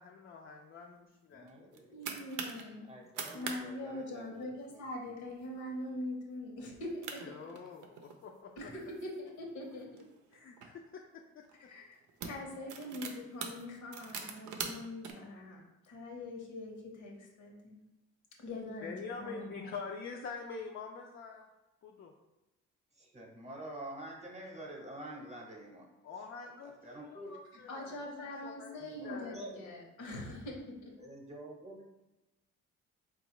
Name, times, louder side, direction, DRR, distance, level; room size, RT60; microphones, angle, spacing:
voice 1, 0.0-2.0 7.2-8.5 10.3-11.4 18.8-21.5 21.8-22.1 26.0-26.7 27.0-28.1 28.4-28.8 29.0-29.4, left 5 dB, 45° left, 1 dB, 0.4 m, -45 dB
voice 2, 1.3-2.1 2.4-2.5 2.8-4.8 22.9-25.9 26.6-27.3 28.8-29.6 31.0-31.8, right 1 dB, 20° right, 0 dB, 0.8 m, -47 dB
sound 1, 1.5-2.6 3.0-3.6 3.9-4.0 4.3-4.7 5.2-5.4 5.9-6.0 6.7-6.8 7.0-8.2 8.8-10.7 11.4-11.6 12.0-15.1, right 6 dB, 85° right, 0.5 m, -43 dB
voice 3, 1.9-2.9 3.3-7.2 8.6-10.0 11.7-17.8 18.4-19.7 27.7-30.9, left 1 dB, 75° left, 0 dB, 1.0 m, -43 dB
4.1 x 2.3 x 2.9 m, 1.0 s
cardioid pair, 90°, 30 cm